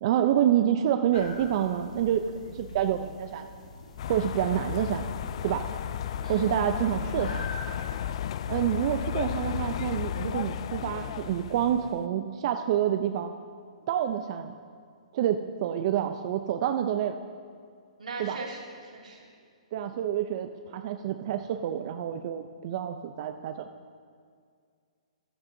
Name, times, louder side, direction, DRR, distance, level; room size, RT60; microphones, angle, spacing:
voice 1, 0.0-3.5 4.1-5.0 5.4-5.7 6.3-7.5 8.5-13.3 13.9-14.5 15.1-17.2 18.2-18.4 19.7-23.7, right 10 dB, 45° right, 7 dB, 0.5 m, -28 dB
sound 1, 1.1-8.0, left 3 dB, 75° left, 1.7 m, -44 dB
sound 2, 4.0-12.0, left 10 dB, 50° left, 0.3 m, -34 dB
voice 2, 18.0-19.3, right 3 dB, 90° right, -2 dB, 2.4 m, -39 dB
14.0 x 12.0 x 2.7 m, 2.1 s
hypercardioid pair, 145°, 4 cm